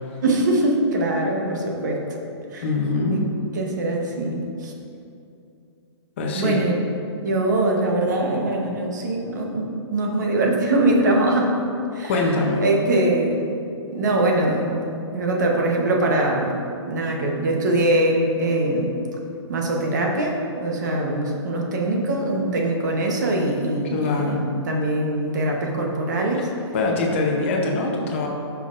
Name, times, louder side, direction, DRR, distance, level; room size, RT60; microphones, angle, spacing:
voice 1, 0.2-2.2 2.5-2.7 3.1-3.2 3.5-4.7 6.3-6.8 7.2-12.1 12.6-13.4 13.9-14.8 15.1-16.6 16.9-18.9 19.5-26.5, right 1 dB, 40° right, 0 dB, 1.0 m, -22 dB
voice 2, 2.6-3.2 6.2-6.7 12.1-12.6 23.9-24.4 26.4-26.5 26.7-28.3, left 3 dB, 25° left, 0 dB, 0.7 m, -23 dB
10.5 x 5.8 x 2.5 m, 2.6 s
hypercardioid pair, 180°, 15 cm